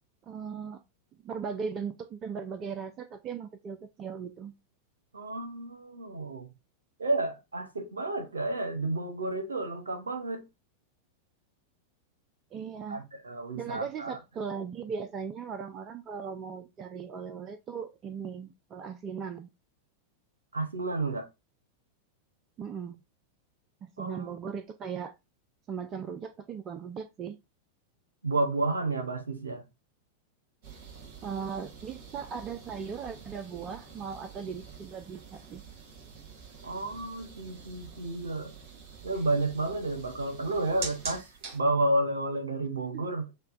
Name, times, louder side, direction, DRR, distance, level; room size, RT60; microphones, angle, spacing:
voice 1, 0.2-0.8 1.2-4.5 12.5-13.0 13.5-19.5 22.6-23.0 23.8-25.1 25.7-27.4 31.2-35.6 42.9-43.1, right 6 dB, 30° right, 0.4 m, -38 dB
voice 2, 5.1-6.5 7.0-10.5 12.9-14.2 20.5-21.3 24.0-24.3 28.2-29.6 36.6-38.5 39.0-43.3, right 2 dB, 75° right, 0.8 m, -31 dB
sound 1, 30.6-41.6, right 5 dB, 45° right, 1.7 m, -46 dB
6.5 x 2.2 x 2.5 m
figure-of-eight pair, 90°, 0 cm